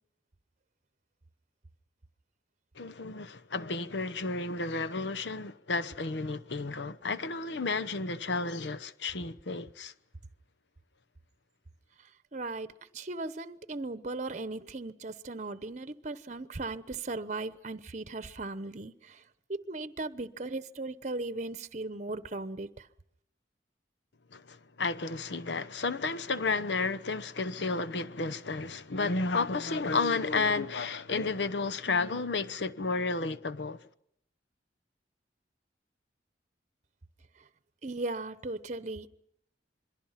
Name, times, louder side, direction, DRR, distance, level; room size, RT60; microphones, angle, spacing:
voice 1, 2.8-9.9 24.3-33.8, left 3 dB, 85° left, 1.0 m, -32 dB
voice 2, 12.3-19.2 19.5-22.9 37.8-39.1, right 2 dB, 40° right, 0.9 m, -37 dB
27.5 x 22.5 x 5.8 m
head